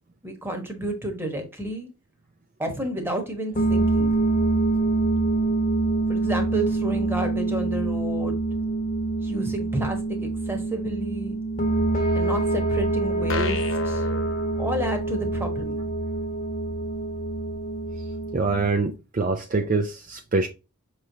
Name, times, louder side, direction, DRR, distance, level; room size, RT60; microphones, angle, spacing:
voice 1, 0.2-1.9 2.6-4.1 6.1-8.4 9.2-11.4 12.1-13.6 13.8-14.0 14.6-15.8, right 1 dB, 10° right, 1.1 m, -30 dB
sound 1, 3.6-18.7, right 2 dB, 35° left, 1.0 m, -25 dB
sound 2, 13.3-15.2, left 4 dB, 60° left, 0.8 m, -33 dB
voice 2, 18.3-20.5, right 3 dB, 40° right, 0.4 m, -25 dB
5.9 x 3.2 x 2.7 m
head